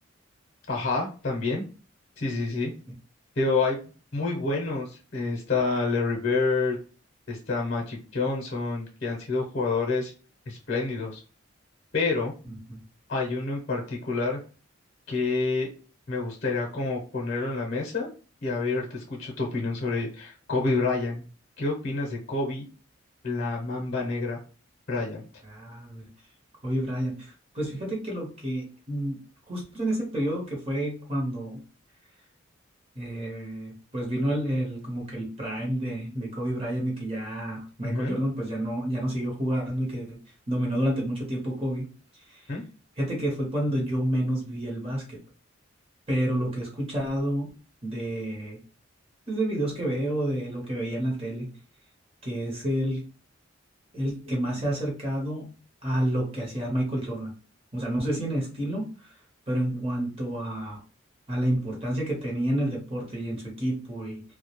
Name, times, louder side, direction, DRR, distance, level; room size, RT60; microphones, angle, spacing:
voice 1, 0.7-1.6 2.2-2.7 3.4-6.8 7.3-10.1 10.5-11.2 11.9-12.3 13.1-14.4 15.1-15.7 16.1-18.1 18.4-21.3 21.6-22.7 23.2-24.4 24.9-25.2 37.8-38.2 42.5-42.6, left 3 dB, 45° left, 0 dB, 0.6 m, -28 dB
voice 2, 12.5-12.8 25.4-26.1 26.6-29.2 29.5-31.6 32.9-40.2 40.5-41.9 42.3-42.6 43.0-45.2 46.1-47.5 47.8-48.6 49.3-51.5 52.2-53.1 53.9-55.5 55.8-57.3 57.7-59.1 59.5-60.8 61.3-64.2, right 1 dB, 30° right, -1 dB, 0.8 m, -29 dB
2.3 x 2.1 x 2.9 m, 0.36 s
head